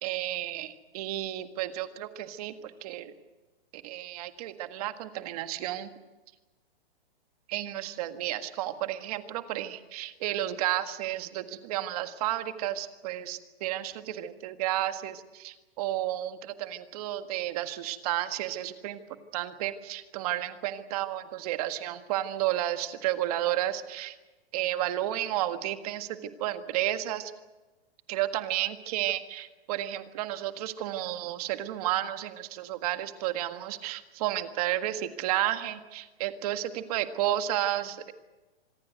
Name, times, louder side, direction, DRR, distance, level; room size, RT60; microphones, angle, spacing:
voice 1, 0.0-3.1 3.7-5.9 7.5-19.0 19.3-24.2 24.5-27.3 28.1-38.1, right 13 dB, 35° right, 9 dB, 1.7 m, -32 dB
26.0 x 19.5 x 8.1 m, 1.2 s
hypercardioid pair, 160°, 31 cm